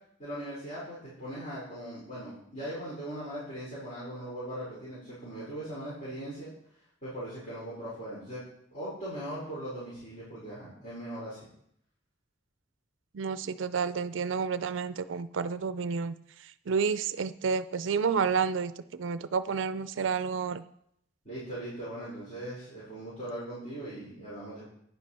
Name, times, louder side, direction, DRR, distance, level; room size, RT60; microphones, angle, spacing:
voice 1, 0.2-6.5 7.0-8.4 8.7-11.4 21.2-24.7, right 1 dB, 40° left, -10 dB, 5.0 m, -39 dB
voice 2, 13.1-16.2 16.7-20.6, right 6 dB, 80° right, 14 dB, 0.5 m, -30 dB
11.5 x 9.7 x 4.3 m, 0.71 s
head